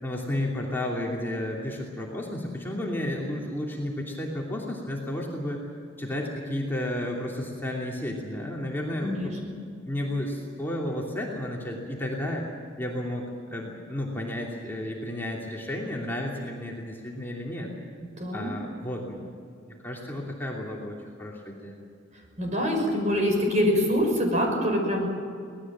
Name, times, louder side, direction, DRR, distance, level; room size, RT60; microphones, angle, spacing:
voice 1, 0.0-5.6 6.0-9.3 9.8-12.4 12.8-17.7 18.3-19.2 19.6-21.8, left 1 dB, 10° left, -3 dB, 2.9 m, -32 dB
voice 2, 9.0-9.5 18.0-18.7 22.4-25.1, equal, 40° right, 2 dB, 5.9 m, -25 dB
25.0 x 19.0 x 7.5 m, 2.3 s
head